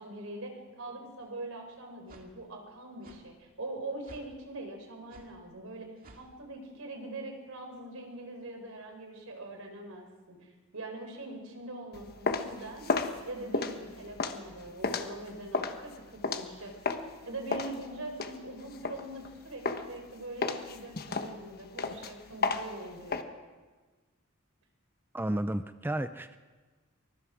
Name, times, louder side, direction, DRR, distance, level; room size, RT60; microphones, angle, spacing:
voice 1, 0.0-12.9 13.3-23.3, right 2 dB, 75° right, 4 dB, 4.3 m, -43 dB
sound 1, 1.2-1.3 2.1-2.3 3.0-3.2 4.1-4.3 5.1-5.3 6.0-6.3, right 1 dB, 45° right, 2.3 m, -53 dB
sound 2, 11.9-17.1 17.5-19.3 19.6-20.0 20.4-23.2, left 4 dB, 50° left, 1.3 m, -33 dB
voice 2, 25.1-26.4, right 1 dB, 10° right, 10 dB, 0.5 m, -32 dB
24.0 x 22.5 x 4.9 m, 1.3 s
head